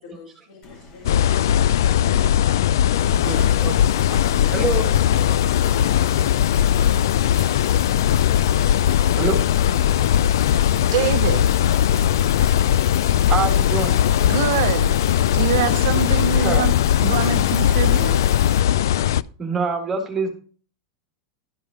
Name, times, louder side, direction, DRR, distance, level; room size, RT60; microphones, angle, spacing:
voice 1, 0.0-2.4 3.0-6.5, left 4 dB, 55° left, 3.5 m, -44 dB
sound 1, 0.6-18.7, left 2 dB, 25° left, 2.1 m, -46 dB
sound 2, 1.0-19.2, left 10 dB, 80° left, 0.3 m, -19 dB
sound 3, 2.9-18.6, equal, 5° left, 1.6 m, -45 dB
voice 2, 3.0-3.9 4.5-4.9 9.2-9.4 13.3-14.1 16.4-16.7 19.4-20.3, right 4 dB, 10° right, 1.7 m, -25 dB
voice 3, 10.9-11.5 14.2-14.9 15.3-16.7 17.0-18.2, right 11 dB, 60° right, 0.7 m, -24 dB
12.0 x 5.4 x 4.7 m
supercardioid pair, 175°, 2 cm